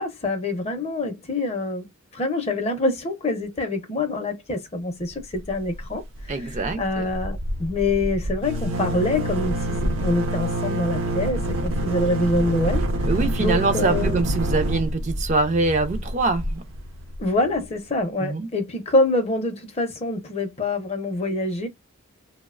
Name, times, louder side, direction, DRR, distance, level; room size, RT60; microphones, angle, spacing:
voice 1, 0.0-12.9 13.4-14.2 17.2-21.7, left 2 dB, 30° left, 0.5 m, -25 dB
sound 1, 5.4-5.9 6.2-6.3 6.5-17.2, right 1 dB, 80° right, 0.6 m, -26 dB
voice 2, 6.3-7.1 13.1-16.6 18.2-18.5, right 3 dB, 35° right, 0.3 m, -24 dB
2.7 x 2.0 x 2.3 m
head